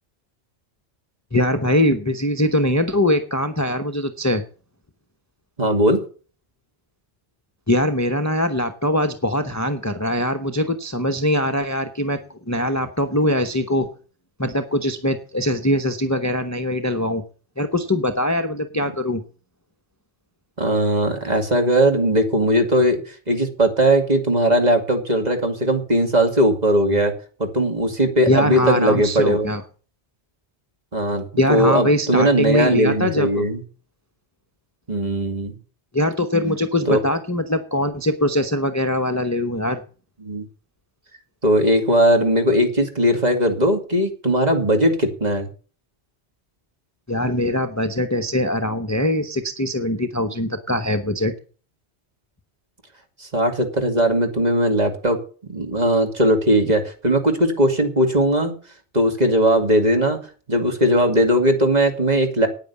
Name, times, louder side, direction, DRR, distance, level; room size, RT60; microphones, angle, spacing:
voice 1, 1.3-4.4 7.7-12.2 12.5-13.9 14.4-17.2 17.6-19.2 28.3-29.6 31.4-33.4 35.9-39.8 47.1-51.3, left 1 dB, 15° left, 8 dB, 0.9 m, -22 dB
voice 2, 5.6-6.0 20.6-27.1 27.4-29.5 30.9-31.2 31.5-33.6 34.9-35.5 36.9-37.0 40.2-40.5 41.4-45.5 53.2-55.2 55.5-58.5 58.9-60.2 60.5-62.5, right 1 dB, 40° right, 5 dB, 2.5 m, -19 dB
9.5 x 9.2 x 8.4 m, 0.39 s
omnidirectional pair, 1.2 m